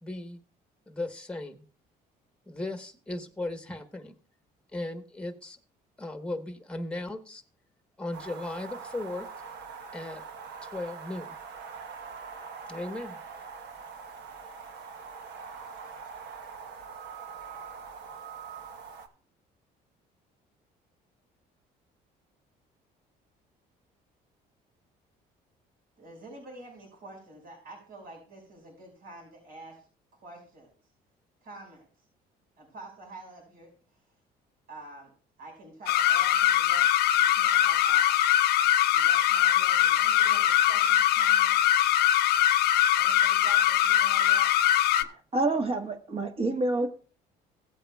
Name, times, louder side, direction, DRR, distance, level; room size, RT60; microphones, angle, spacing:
voice 1, 0.0-0.4 0.9-1.7 2.5-4.2 4.7-5.6 6.0-7.4 8.0-9.3 9.9-10.2 10.6-11.4 12.7-13.2, left 2 dB, 5° left, 7 dB, 1.2 m, -36 dB
sound 1, 8.1-19.1, right 5 dB, 80° right, 1.2 m, -43 dB
voice 2, 26.0-29.8 30.2-30.7 31.4-31.9 32.6-33.7 34.7-35.1 35.4-38.2 38.9-41.6 43.0-44.5, right 2 dB, 65° right, 0 dB, 5.3 m, -48 dB
sound 2, 35.9-45.0, left 12 dB, 70° left, 0.6 m, -22 dB
voice 3, 45.0-46.9, right 2 dB, 35° right, 6 dB, 1.4 m, -28 dB
16.5 x 8.3 x 2.3 m, 0.40 s
cardioid pair, 110°, 17 cm